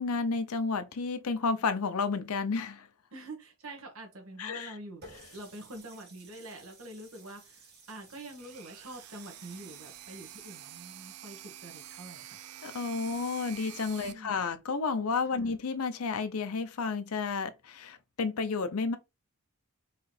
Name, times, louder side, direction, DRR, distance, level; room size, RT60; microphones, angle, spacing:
voice 1, 0.0-2.9 4.4-4.7 12.6-19.0, left 4 dB, 75° left, 0.6 m, -31 dB
voice 2, 3.1-12.4 14.0-14.4 15.3-15.5, right 2 dB, 65° right, 1.5 m, -46 dB
Water tap faucet, 5.0-10.8, right 3 dB, 50° right, 1.9 m, -55 dB
sound 1, 8.4-14.1, right 11 dB, 85° right, 0.5 m, -47 dB
4.7 x 3.2 x 3.2 m
head